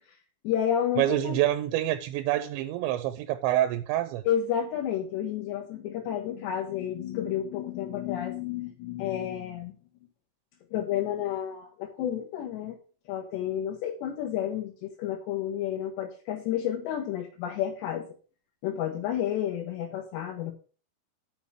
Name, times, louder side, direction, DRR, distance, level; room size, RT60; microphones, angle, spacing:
voice 1, 0.4-1.4 4.3-9.7 10.7-12.8 13.1-18.1 18.6-20.5, left 10 dB, 75° left, 3.2 m, -31 dB
voice 2, 1.0-4.2, right 13 dB, 90° right, 3.1 m, -27 dB
7.4 x 5.7 x 7.4 m
omnidirectional pair, 5.1 m